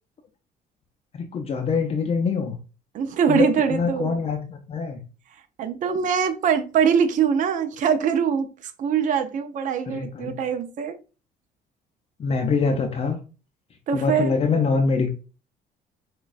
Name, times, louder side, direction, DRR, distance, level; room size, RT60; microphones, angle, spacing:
voice 1, 1.1-2.6 3.3-5.0 9.9-10.3 12.2-13.2 13.9-15.1, left 5 dB, 35° left, 5 dB, 0.5 m, -24 dB
voice 2, 2.9-4.2 5.6-10.9 13.9-14.3, right 7 dB, 50° right, 7 dB, 0.5 m, -23 dB
6.0 x 2.3 x 2.5 m, 0.34 s
cardioid pair, 110°, 17 cm